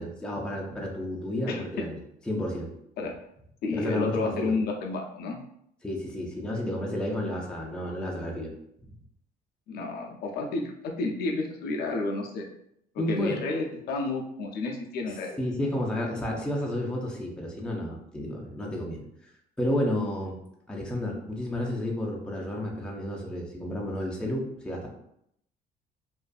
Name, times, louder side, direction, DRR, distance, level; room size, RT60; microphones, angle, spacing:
voice 1, 0.0-2.0 2.3-2.7 3.8-4.5 5.8-8.5 13.0-13.4 15.4-19.0 19.6-20.4 20.7-24.9, left 1 dB, 5° left, -2 dB, 0.6 m, -31 dB
voice 2, 1.5-1.9 3.0-3.1 3.6-5.4 9.7-12.5 12.9-15.4, left 3 dB, 70° left, 1 dB, 0.5 m, -31 dB
2.5 x 2.4 x 2.3 m, 0.74 s
cardioid pair, 110°, 17 cm